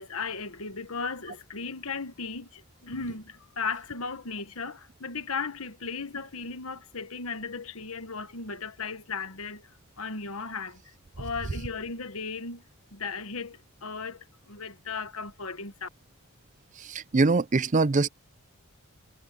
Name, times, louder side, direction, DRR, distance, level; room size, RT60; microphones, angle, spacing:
voice 1, 0.0-9.7 10.0-12.6 12.9-15.9, left 4 dB, 70° left, 1.5 m, -36 dB
voice 2, 16.9-18.1, right 3 dB, 35° right, 0.5 m, -23 dB
head